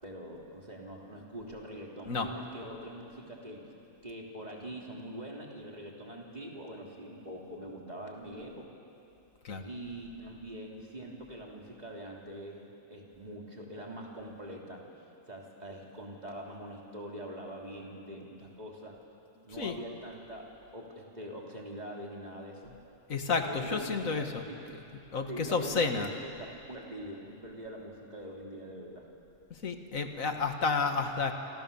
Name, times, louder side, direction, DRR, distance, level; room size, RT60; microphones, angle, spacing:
voice 1, 0.0-3.7 4.0-8.7 9.6-14.8 15.3-19.0 19.4-22.8 23.4-24.7 25.3-29.1, right 1 dB, 30° right, -2 dB, 3.5 m, -43 dB
voice 2, 23.1-24.4 25.1-26.1 29.5-31.3, left 4 dB, 85° left, 5 dB, 2.1 m, -31 dB
27.5 x 27.0 x 7.1 m, 2.8 s
omnidirectional pair, 1.4 m